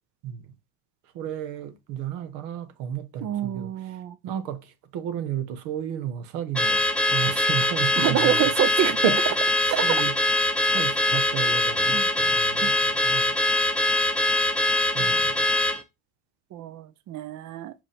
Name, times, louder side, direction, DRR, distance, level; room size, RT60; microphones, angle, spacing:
voice 1, 0.2-0.5 1.1-8.4 8.7-9.3 9.7-10.2 10.6-13.3 14.9-15.5, right 9 dB, 75° right, 1.1 m, -32 dB
voice 2, 3.2-4.2 8.0-9.0 9.7-9.8 11.9-12.1 12.6-12.7 16.5-17.7, right 11 dB, 45° right, 0.5 m, -27 dB
Car / Alarm, 6.6-15.8, left 1 dB, 5° left, 0.6 m, -23 dB
5.6 x 5.0 x 3.4 m
cardioid pair, 125°, 42 cm